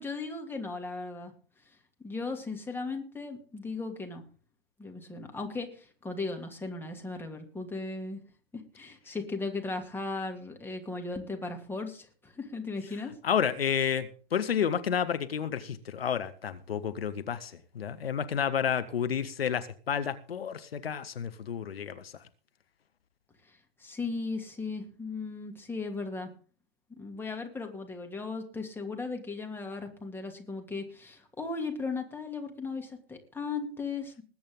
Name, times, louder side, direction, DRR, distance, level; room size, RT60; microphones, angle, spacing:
voice 1, 0.0-1.3 2.0-4.2 4.8-8.2 8.5-13.1 23.4-26.3 27.0-34.2, left 3 dB, 5° left, 3 dB, 2.6 m, -37 dB
voice 2, 13.2-22.1, left 8 dB, 75° left, 11 dB, 1.4 m, -30 dB
20.5 x 8.7 x 3.8 m, 0.40 s
figure-of-eight pair, 110°, 30 cm